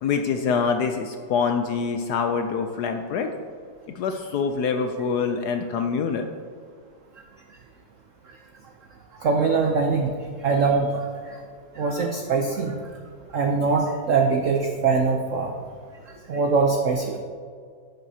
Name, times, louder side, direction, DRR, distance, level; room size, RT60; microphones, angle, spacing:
voice 1, 0.0-3.4 3.9-6.3, left 5 dB, 75° left, 6 dB, 0.9 m, -25 dB
voice 2, 9.2-10.1 10.4-11.4 11.8-12.8 13.3-15.5 16.3-17.2, right 4 dB, 75° right, 3 dB, 0.7 m, -22 dB
10.5 x 7.9 x 2.8 m, 2.1 s
omnidirectional pair, 2.1 m